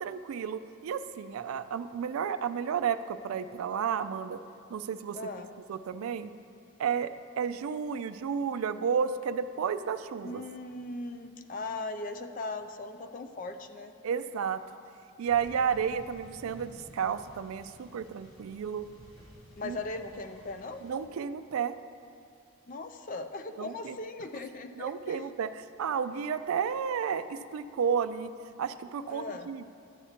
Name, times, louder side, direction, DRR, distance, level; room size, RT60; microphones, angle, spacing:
voice 1, 0.0-4.4 4.7-5.2 5.7-6.3 6.8-10.4 14.0-14.6 15.2-18.9 19.6-19.8 20.8-21.7 23.6-24.0 24.8-28.3 28.6-29.6, right 7 dB, 85° right, 13 dB, 0.3 m, -32 dB
voice 2, 5.1-5.5 10.2-13.9 19.6-20.8 22.7-25.2 29.1-29.5, left 3 dB, 40° left, 7 dB, 0.4 m, -39 dB
sound 1, 15.3-21.1, equal, 85° left, 1.4 m, -54 dB
12.5 x 8.2 x 2.9 m, 2.4 s
head